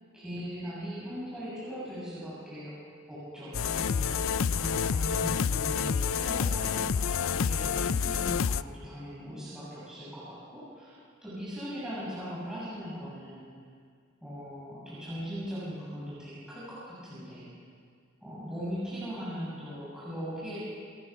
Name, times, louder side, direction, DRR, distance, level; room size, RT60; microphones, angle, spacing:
voice 1, 0.1-2.8 3.1-11.0 11.2-13.5 14.2-17.5 18.2-20.6, equal, 5° right, -10 dB, 7.8 m, -39 dB
sound 1, 3.5-8.6, left 6 dB, 70° left, 0.5 m, -28 dB
27.5 x 22.5 x 6.2 m, 2.1 s
head